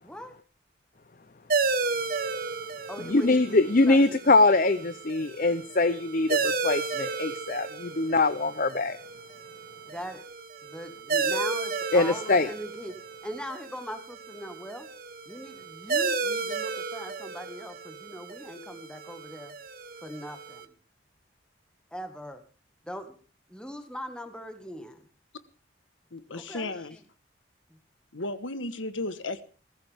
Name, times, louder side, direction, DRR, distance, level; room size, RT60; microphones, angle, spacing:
voice 1, 0.0-0.4 2.9-4.3 9.9-10.2 10.6-14.9 15.3-19.5 20.0-20.7 21.9-22.4 22.9-23.2 23.5-25.1 26.3-27.0 27.7-27.8, equal, 5° left, 7 dB, 1.8 m, -40 dB
sound 1, 1.5-20.6, right 4 dB, 45° right, 1.3 m, -33 dB
voice 2, 3.1-9.0 11.9-12.5, left 2 dB, 45° left, 13 dB, 0.7 m, -23 dB
voice 3, 26.1-27.0 28.1-29.4, left 2 dB, 85° left, 12 dB, 1.4 m, -34 dB
21.0 x 15.0 x 3.6 m, 0.36 s
head